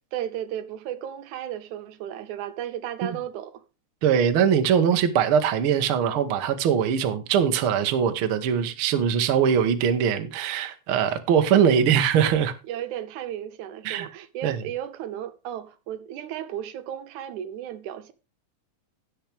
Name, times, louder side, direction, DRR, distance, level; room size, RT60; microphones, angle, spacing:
voice 1, 0.1-3.6 11.8-12.0 12.7-18.1, right 11 dB, 85° right, 2.3 m, -34 dB
voice 2, 4.0-12.5 13.8-14.1 14.4-14.6, right 8 dB, 60° right, 1.6 m, -22 dB
16.0 x 5.9 x 3.4 m
omnidirectional pair, 3.4 m